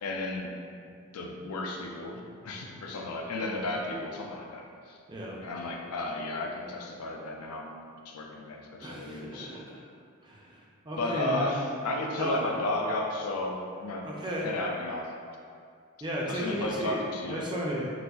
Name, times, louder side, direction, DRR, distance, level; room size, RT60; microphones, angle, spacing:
voice 1, 0.0-0.6 1.1-5.0 5.4-7.7 8.0-9.5 10.9-14.1 14.4-15.1 16.3-17.4, left 2 dB, 90° left, 0 dB, 0.4 m, -33 dB
voice 2, 5.1-5.4 8.8-9.8 10.2-11.5 12.2-12.4 14.1-14.5 16.0-17.0 17.3-17.9, equal, 20° right, -3 dB, 0.4 m, -34 dB
4.0 x 2.5 x 2.3 m, 2.3 s
head